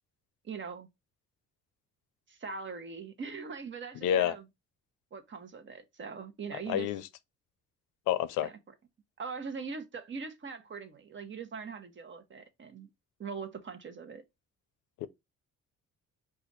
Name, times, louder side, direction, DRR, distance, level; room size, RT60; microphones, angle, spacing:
voice 1, 0.4-0.9 2.3-4.5 5.1-6.9 8.4-8.6 9.2-12.9 13.2-14.2, right 5 dB, 40° right, 1.0 m, -41 dB
voice 2, 4.0-4.3 6.7-7.0 8.1-8.5 15.0-15.1, left 10 dB, 90° left, 0.5 m, -28 dB
4.9 x 2.5 x 4.0 m
cardioid pair, 90°, 30 cm